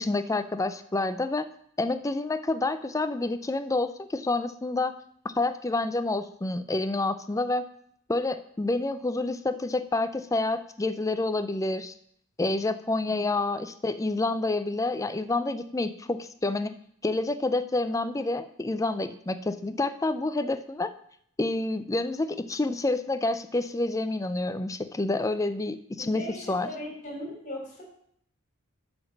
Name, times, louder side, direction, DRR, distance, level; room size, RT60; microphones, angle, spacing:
voice 1, 0.0-1.5 1.8-4.9 5.2-7.7 8.1-11.9 12.4-16.7 17.0-20.9 21.4-26.2 26.5-26.7, left 2 dB, 15° left, 10 dB, 0.4 m, -28 dB
voice 2, 26.0-27.8, equal, 35° left, 0 dB, 3.1 m, -38 dB
7.8 x 5.2 x 7.1 m, 0.66 s
head